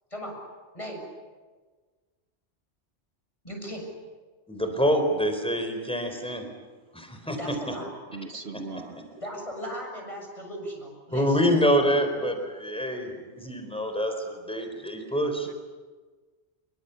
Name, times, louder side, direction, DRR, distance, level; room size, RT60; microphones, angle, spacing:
voice 1, 0.7-1.1 3.4-3.9 7.4-7.9 9.2-11.4, equal, 30° left, 7.3 m, -37 dB
voice 2, 4.5-6.4 6.9-7.7 8.5-8.6 11.1-15.5, equal, 5° left, 4.3 m, -26 dB
voice 3, 8.1-9.0 15.5-15.6, right 3 dB, 65° right, 1.5 m, -38 dB
27.0 x 24.0 x 8.4 m
omnidirectional pair, 1.1 m